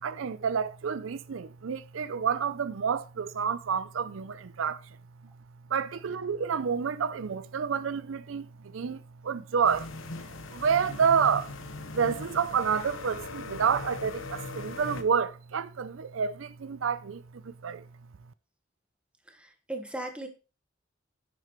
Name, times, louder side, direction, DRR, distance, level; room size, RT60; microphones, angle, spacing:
voice 1, 0.0-4.8 5.7-9.9 10.5-11.5 11.9-17.9, right 6 dB, 80° right, 0.5 m, -29 dB
sound 1, 9.6-15.0, left 3 dB, 80° left, 1.0 m, -40 dB
voice 2, 19.3-20.3, right 1 dB, 5° right, 1.3 m, -37 dB
9.9 x 7.6 x 3.1 m
head